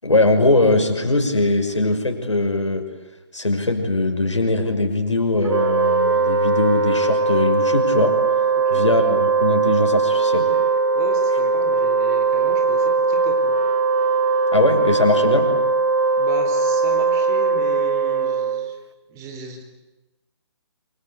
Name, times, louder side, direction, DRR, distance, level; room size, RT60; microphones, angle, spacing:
voice 1, 0.0-2.9 3.3-8.2 8.7-10.5 14.5-15.6, left 2 dB, 85° left, 4 dB, 6.0 m, -20 dB
Wind instrument woodwind instrument, 5.4-18.8, right 4 dB, 65° right, 2.3 m, -20 dB
voice 2, 8.5-8.9 10.9-13.6 16.2-18.8 19.1-19.6, right 4 dB, 20° right, 6 dB, 4.1 m, -36 dB
28.5 x 25.0 x 8.4 m, 1.0 s
figure-of-eight pair, 140°, 15 cm